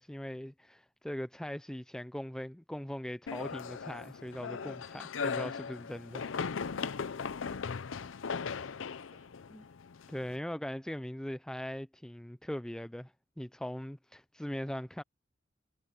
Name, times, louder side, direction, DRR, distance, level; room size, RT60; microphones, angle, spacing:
voice 1, 0.0-6.4 9.5-9.6 10.1-15.0, equal, 5° left, 0.3 m, -40 dB
sound 1, 3.3-10.3, left 5 dB, 80° left, 0.6 m, -38 dB
voice 2, 7.7-9.8, right 2 dB, 40° right, 6.1 m, -69 dB
head